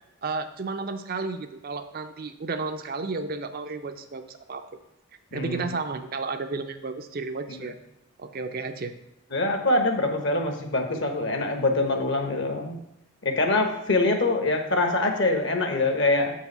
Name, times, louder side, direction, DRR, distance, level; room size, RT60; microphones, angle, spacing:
voice 1, 0.2-4.6 5.3-7.7 8.2-8.9, right 3 dB, 45° right, 8 dB, 0.4 m, -32 dB
voice 2, 5.3-5.6 9.3-12.8 13.2-16.3, left 2 dB, 55° left, 4 dB, 1.1 m, -24 dB
7.2 x 4.7 x 5.4 m, 0.86 s
head